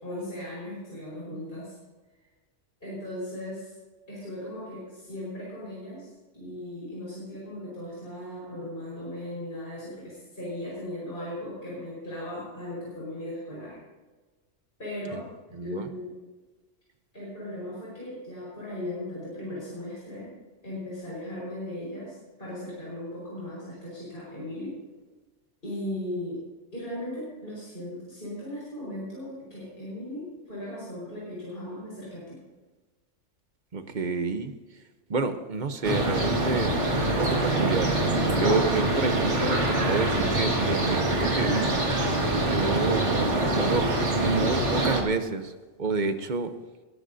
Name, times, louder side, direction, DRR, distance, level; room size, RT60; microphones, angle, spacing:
voice 1, 0.0-1.8 2.8-3.7 4.1-13.8 14.8-15.3 15.6-16.1 17.1-20.3 20.6-24.8 25.6-26.4 26.7-32.4, left 1 dB, 45° left, -7 dB, 5.3 m, -37 dB
voice 2, 33.7-34.5 35.1-37.9 38.3-41.7 42.5-43.0 43.3-43.8 44.1-45.5 45.8-46.5, right 4 dB, 40° right, 9 dB, 1.0 m, -29 dB
sound 1, 35.8-45.0, right 2 dB, 65° right, 2.2 m, -25 dB
20.0 x 14.0 x 2.7 m, 1.3 s
omnidirectional pair, 1.3 m